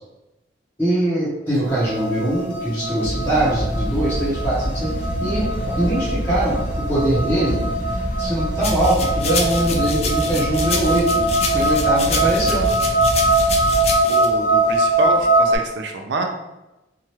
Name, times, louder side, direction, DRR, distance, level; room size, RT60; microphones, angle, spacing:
voice 1, 0.8-4.9 5.2-5.5 5.8-6.6 6.9-7.6 8.2-12.7, right 1 dB, 10° left, -10 dB, 0.7 m, -22 dB
sound 1, 1.6-15.6, right 2 dB, 70° left, 0.7 m, -22 dB
sound 2, 3.0-14.0, equal, 5° right, 1.1 m, -27 dB
sound 3, 8.6-14.2, left 5 dB, 35° left, 0.3 m, -28 dB
voice 2, 14.1-16.3, right 2 dB, 75° right, 4 dB, 0.4 m, -26 dB
2.8 x 2.3 x 3.0 m, 0.97 s
head